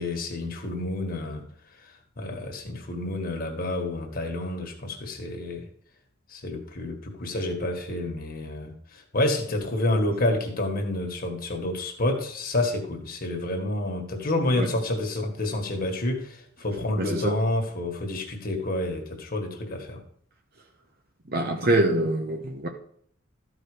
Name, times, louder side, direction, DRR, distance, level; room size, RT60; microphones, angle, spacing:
voice 1, 0.0-1.4 2.2-5.6 6.3-20.0, left 1 dB, 50° left, 3 dB, 1.7 m, -29 dB
voice 2, 17.0-17.3 21.3-22.7, right 1 dB, 50° right, 3 dB, 1.0 m, -24 dB
13.0 x 5.0 x 5.0 m, 0.64 s
head